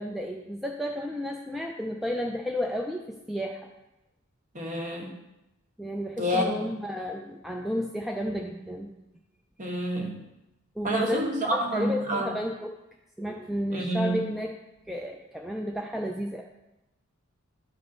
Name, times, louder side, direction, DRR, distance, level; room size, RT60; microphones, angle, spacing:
voice 1, 0.0-3.7 5.8-8.9 10.8-12.7 13.2-14.5 14.9-16.4, equal, ahead, 0 dB, 0.5 m, -32 dB
voice 2, 4.5-5.1 6.2-6.4 9.6-10.2 10.8-12.3 13.7-14.2, equal, 40° right, 0 dB, 1.5 m, -28 dB
12.0 x 5.1 x 4.0 m, 0.95 s
head